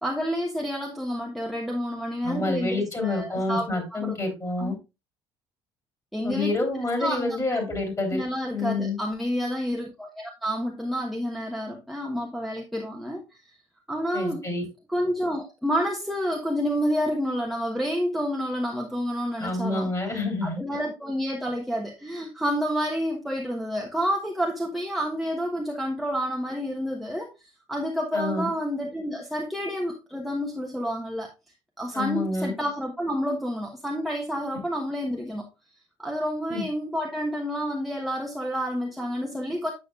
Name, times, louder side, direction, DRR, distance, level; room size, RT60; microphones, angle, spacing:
voice 1, 0.0-4.2 4.6-4.7 6.1-6.5 7.0-7.4 8.1-13.2 13.9-14.5 14.9-19.9 20.4-31.3 31.8-35.5 36.0-39.7, equal, ahead, 1.2 m, -29 dB
voice 2, 2.2-4.8 6.2-8.2 8.5-9.0 14.1-14.6 19.4-20.6 28.1-28.5 31.9-32.5 36.5-36.6, left 2 dB, 20° left, 3.4 m, -28 dB
8.5 x 6.4 x 2.4 m
hypercardioid pair, 55°, 14 cm